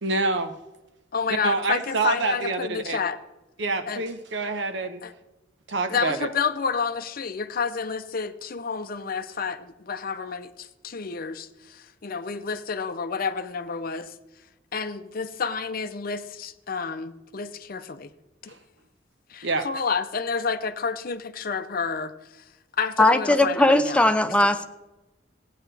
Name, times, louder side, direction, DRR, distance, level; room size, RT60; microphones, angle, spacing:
voice 1, 0.0-0.5 1.4-3.0 3.6-5.0 5.7-6.3 18.5-18.6 19.4-19.7, right 3 dB, 65° right, 8 dB, 1.0 m, -26 dB
voice 2, 1.1-3.2 3.9-4.0 5.0-5.1 5.9-14.1 14.7-18.1 18.4-18.5 19.3-22.4 22.8-24.5, left 5 dB, 50° left, 11 dB, 0.6 m, -30 dB
voice 3, 23.0-24.6, left 1 dB, 5° left, 8 dB, 0.5 m, -19 dB
16.5 x 9.3 x 3.4 m, 1.0 s
head